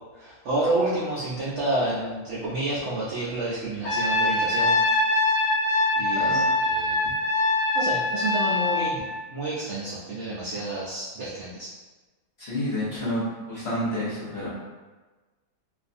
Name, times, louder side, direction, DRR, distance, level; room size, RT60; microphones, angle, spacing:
voice 1, 0.1-4.8 6.0-6.9 7.7-9.0 9.3-11.7, right 2 dB, 75° right, -7 dB, 0.6 m, -29 dB
Trumpet, 3.8-8.9, left 2 dB, 90° left, 1.2 m, -23 dB
voice 2, 6.1-6.4 12.4-14.5, equal, 50° left, -9 dB, 0.8 m, -29 dB
2.5 x 2.4 x 2.5 m, 1.2 s
omnidirectional pair, 1.8 m